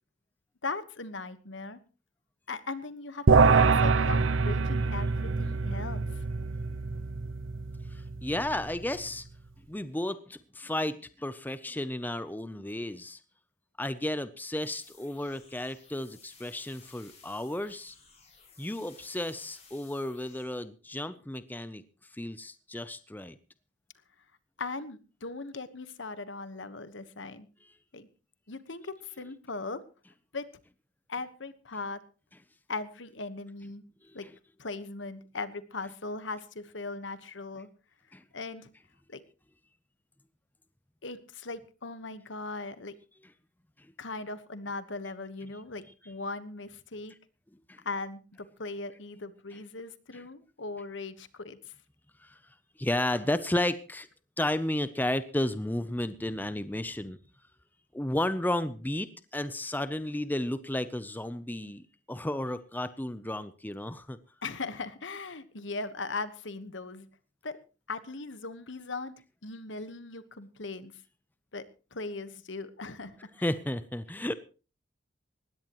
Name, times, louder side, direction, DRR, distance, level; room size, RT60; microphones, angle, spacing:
voice 1, 0.6-1.8 2.5-6.2 24.6-27.5 27.9-28.1 28.5-29.8 30.3-30.4 31.1-32.0 32.7-33.9 34.1-34.3 34.6-37.7 38.3-38.7 39.1-39.2 41.0-43.0 44.0-47.1 47.8-51.7 64.4-67.1 67.4-67.6 67.9-69.1 69.4-70.9 71.5-71.6 71.9-73.2, left 3 dB, 70° left, 13 dB, 1.3 m, -39 dB
sound 1, 3.3-8.8, right 4 dB, 85° right, 0.8 m, -25 dB
voice 2, 7.9-9.3 9.7-13.2 13.8-18.0 18.6-21.8 22.1-23.4 34.2-34.3 38.1-38.2 47.7-47.8 50.1-50.2 52.2-52.4 52.8-54.1 54.4-57.2 57.9-64.2 73.4-74.3, left 1 dB, 10° left, 13 dB, 0.6 m, -33 dB
sound 2, 14.6-20.5, left 5 dB, 35° left, 7.8 m, -57 dB
20.0 x 16.5 x 3.1 m, 0.34 s
head